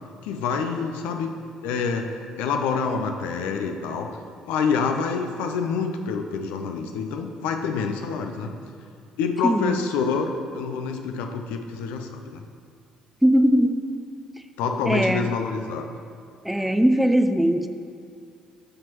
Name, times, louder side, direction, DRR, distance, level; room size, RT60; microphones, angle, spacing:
voice 1, 0.2-1.3 1.6-2.1 2.4-4.2 4.5-8.5 9.2-12.4 14.6-15.9, left 5 dB, 65° left, 5 dB, 0.5 m, -27 dB
voice 2, 9.4-9.8 13.2-14.0 14.9-15.3 16.4-17.7, equal, 5° right, 9 dB, 0.4 m, -20 dB
11.5 x 6.0 x 3.0 m, 2.4 s
figure-of-eight pair, 50°, 3 cm